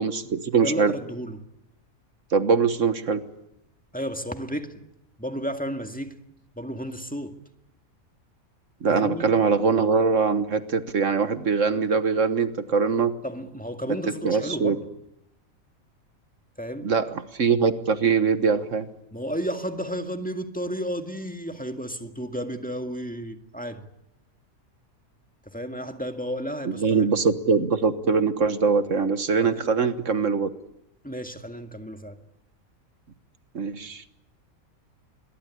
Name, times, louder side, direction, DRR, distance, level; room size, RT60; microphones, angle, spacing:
voice 1, 0.0-0.9 2.3-3.2 8.8-13.1 14.1-14.8 16.8-18.9 26.7-30.5 33.6-34.0, right 5 dB, 60° right, 1.7 m, -22 dB
voice 2, 0.6-1.5 3.9-4.8 5.2-6.2 6.6-7.4 8.9-9.3 13.2-14.9 16.6-16.9 19.1-23.9 25.5-27.1 29.4-29.7 31.0-32.2, equal, 5° left, 1.9 m, -32 dB
26.0 x 22.5 x 9.9 m
omnidirectional pair, 1.5 m